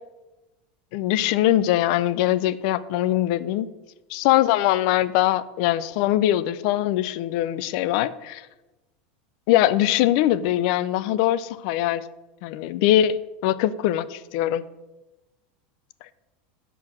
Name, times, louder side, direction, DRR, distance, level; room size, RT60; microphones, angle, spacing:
voice 1, 0.9-3.7 4.1-8.5 9.5-12.0 12.4-14.6, left 13 dB, 45° left, 17 dB, 0.3 m, -22 dB
7.6 x 4.6 x 6.0 m, 1.1 s
supercardioid pair, 175°, 5 cm